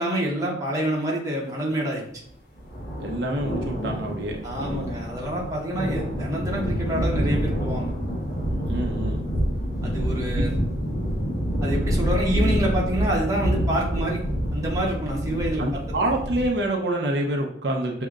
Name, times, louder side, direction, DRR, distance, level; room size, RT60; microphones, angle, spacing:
voice 1, 0.0-2.0 4.4-7.9 9.8-10.6 11.6-14.2 14.5-15.6, right 1 dB, 20° right, -3 dB, 1.0 m, -27 dB
sound 1, 2.6-16.5, equal, 60° left, 1.2 m, -27 dB
voice 2, 3.0-5.0 8.7-9.3 10.4-10.5 15.6-18.1, right 1 dB, 70° right, 0 dB, 0.7 m, -27 dB
6.3 x 2.8 x 2.4 m, 0.66 s
head